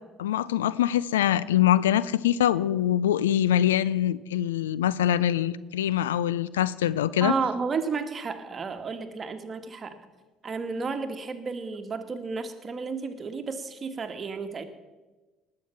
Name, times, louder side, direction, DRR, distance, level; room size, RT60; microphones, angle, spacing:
voice 1, 0.2-7.3, left 11 dB, 80° left, 19 dB, 0.3 m, -24 dB
voice 2, 7.2-10.0 10.4-14.6, right 5 dB, 35° right, 8 dB, 1.4 m, -32 dB
19.0 x 6.6 x 5.8 m, 1.2 s
hypercardioid pair, 55°, 0 cm